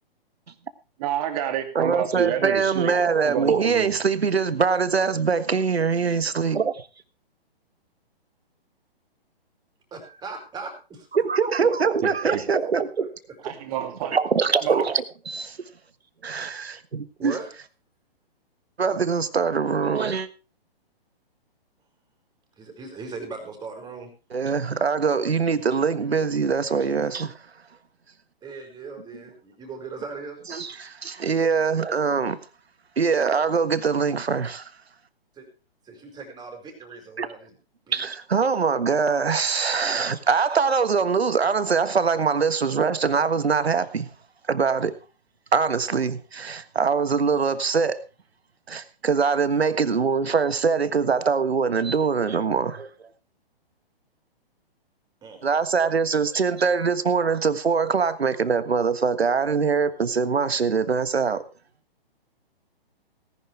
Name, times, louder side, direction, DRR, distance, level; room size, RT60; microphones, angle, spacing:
voice 1, 1.0-2.9 3.2-3.9 12.0-12.4 13.4-14.1 14.6-14.8, right 10 dB, 35° right, 2.9 m, -29 dB
voice 2, 1.7-6.7 11.1-13.1 14.1-15.6 16.2-17.4 18.8-20.3 24.3-27.3 30.5-32.4 33.0-34.7 37.2-37.3 37.9-44.1 44.5-44.9 45.5-48.0 48.7-52.9 55.4-61.4, right 5 dB, 85° right, 1.5 m, -23 dB
voice 3, 9.9-11.3 11.6-11.7 12.9-13.1 16.3-16.5 17.2-17.5 22.6-24.1 28.4-30.4 35.4-35.5 35.9-37.5 37.9-38.0 55.2-55.4, right 4 dB, 15° right, 5.4 m, -38 dB
18.5 x 11.0 x 3.3 m
hypercardioid pair, 130°, 31 cm